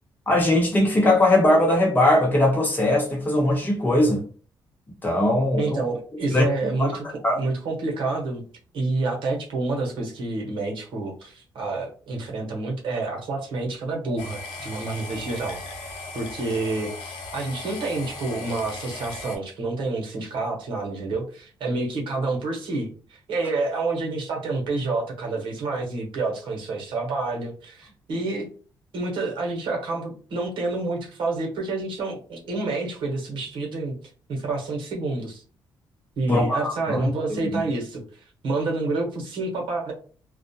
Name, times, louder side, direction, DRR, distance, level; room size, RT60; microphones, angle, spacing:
voice 1, 0.3-4.2 5.0-5.8 6.3-6.5 6.8-6.9 7.2-7.4 36.3-37.6, left 1 dB, 20° left, 0.9 m, -20 dB
voice 2, 5.6-8.4 8.7-28.5 28.9-34.0 34.3-35.4 36.2-39.9, right 3 dB, 75° right, 0.9 m, -28 dB
sound 1, 14.2-19.4, left 3 dB, 85° left, 0.5 m, -37 dB
2.3 x 2.1 x 2.7 m
cardioid pair, 125°, 8 cm